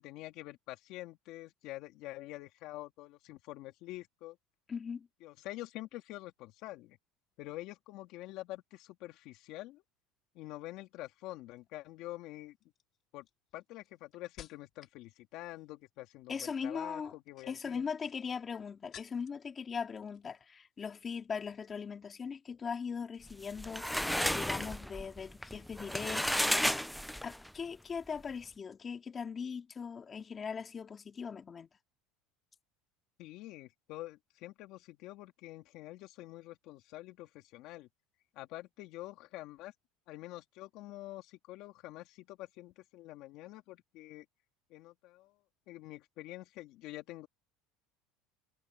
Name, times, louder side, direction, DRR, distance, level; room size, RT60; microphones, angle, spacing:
voice 1, 0.0-4.4 5.2-7.0 7.4-9.8 10.3-12.6 13.1-13.3 13.5-17.8 33.2-37.9 38.3-39.7 40.1-44.2 44.7-45.4 45.7-47.3, left 17 dB, 55° left, 2.8 m, -47 dB
voice 2, 4.7-5.1 16.3-17.2 17.4-26.9 27.2-31.7, left 6 dB, 25° left, 3.2 m, -40 dB
sound 1, 11.6-11.9 12.6-15.0 15.3-15.8 17.1-19.5 19.8-20.5 20.7-21.0, left 10 dB, 40° left, 3.6 m, -57 dB
sound 2, 23.3-27.5, equal, ahead, 0.3 m, -33 dB
cardioid pair, 140°, 0 cm